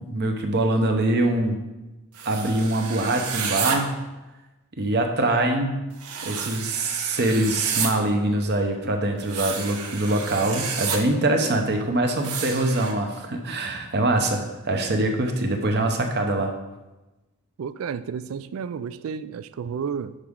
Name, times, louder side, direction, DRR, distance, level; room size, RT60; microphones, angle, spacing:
voice 1, 0.0-1.6 2.3-4.0 4.8-5.8 6.2-16.5, right 2 dB, 50° right, 0.9 m, -24 dB
sound 1, 2.1-3.8 6.0-7.9 9.2-11.0 12.2-12.9, right 6 dB, 90° right, 0.9 m, -30 dB
voice 2, 17.6-20.2, right 6 dB, 65° right, 0.3 m, -31 dB
10.5 x 4.8 x 3.7 m
head